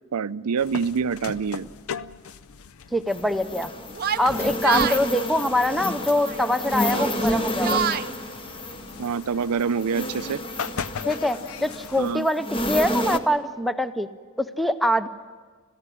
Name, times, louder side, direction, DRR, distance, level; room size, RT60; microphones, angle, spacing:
voice 1, 0.1-1.7 9.0-10.4 12.0-12.3, right 6 dB, 90° right, 16 dB, 0.5 m, -26 dB
sound 1, 0.6-12.1, left 6 dB, 70° left, 0.6 m, -39 dB
voice 2, 2.9-3.7 4.2-7.8 11.1-14.1 14.4-15.1, left 1 dB, ahead, 11 dB, 0.5 m, -24 dB
sound 2, 3.1-13.2, left 1 dB, 25° left, 0.9 m, -30 dB
Yell, 4.0-5.0 6.1-6.5 6.8-8.1, right 8 dB, 45° right, 0.6 m, -27 dB
21.0 x 15.0 x 9.9 m, 1.5 s
head